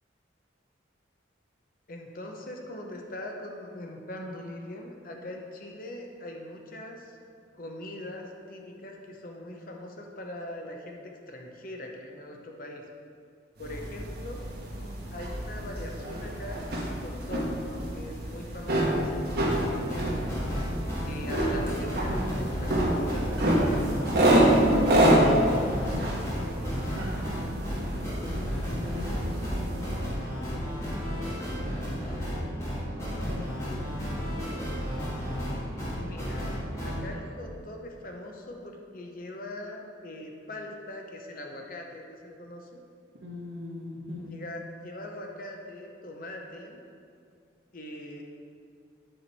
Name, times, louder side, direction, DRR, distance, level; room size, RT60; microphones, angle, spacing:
voice 1, 1.9-7.2 7.6-12.8 13.6-14.5 15.1-17.5 17.9-20.3 21.0-23.9 35.9-36.5 36.8-42.8 44.3-46.8 47.7-48.2, left 1 dB, 45° left, 1 dB, 0.8 m, -41 dB
sound 1, 13.6-30.1, right 1 dB, 55° right, 1.4 m, -27 dB
voice 2, 15.5-16.0 21.6-22.2 24.6-28.4 28.7-31.2 31.5-32.4 33.0-34.6 43.2-44.4, left 1 dB, 85° right, -2 dB, 1.4 m, -39 dB
sound 2, 19.3-37.0, equal, 15° left, 1.6 m, -33 dB
8.7 x 5.0 x 4.2 m, 2.3 s
head